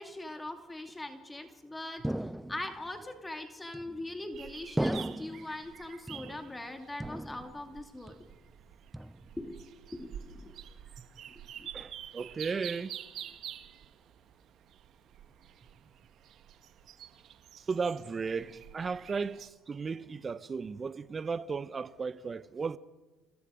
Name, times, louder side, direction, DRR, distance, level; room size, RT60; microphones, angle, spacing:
voice 1, 0.0-8.2 9.4-9.6 9.9-10.5 11.3-11.7, left 1 dB, 15° left, 2.6 m, -41 dB
sound 1, 2.0-2.9 3.7-4.3 4.8-5.6 6.1-6.7 7.0-7.8 8.1-8.5 8.9-9.5, right 1 dB, 5° right, 0.6 m, -36 dB
sound 2, 4.3-19.5, right 10 dB, 60° right, 1.5 m, -48 dB
voice 2, 11.7-13.0 17.7-22.8, right 5 dB, 35° right, 0.9 m, -35 dB
28.0 x 22.5 x 5.1 m
hypercardioid pair, 70°, 0 cm